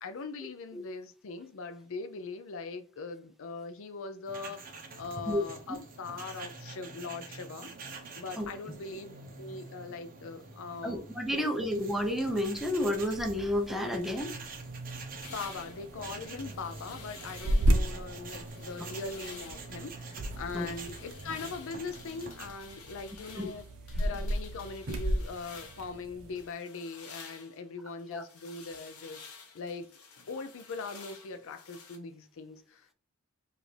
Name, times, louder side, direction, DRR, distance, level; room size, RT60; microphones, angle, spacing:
voice 1, 0.0-7.7 8.1-11.1 11.3-11.8 15.3-23.6 24.0-29.2 29.5-29.9 30.3-32.9, left 4 dB, 65° left, 0.5 m, -41 dB
sound 1, 4.2-22.5, right 3 dB, 40° right, 0.9 m, -46 dB
voice 2, 10.8-14.3 20.5-20.7 23.4-23.5 28.1-28.2, left 1 dB, ahead, 0.6 m, -30 dB
sound 2, 11.7-26.4, equal, 70° right, 0.7 m, -35 dB
sound 3, 15.2-17.9 18.3-19.7 20.1-26.0 26.4-32.0, left 5 dB, 85° left, 0.9 m, -51 dB
4.9 x 2.6 x 3.2 m
head